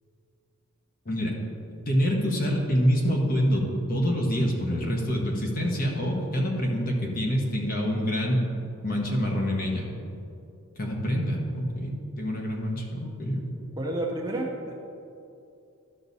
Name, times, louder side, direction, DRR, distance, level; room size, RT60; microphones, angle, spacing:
voice 1, 1.0-1.4 1.9-8.5 8.8-9.9 10.8-13.5, equal, 40° left, 0 dB, 1.3 m, -26 dB
voice 2, 13.8-14.8, right 1 dB, 15° right, -1 dB, 0.8 m, -30 dB
12.0 x 5.9 x 4.1 m, 2.7 s
head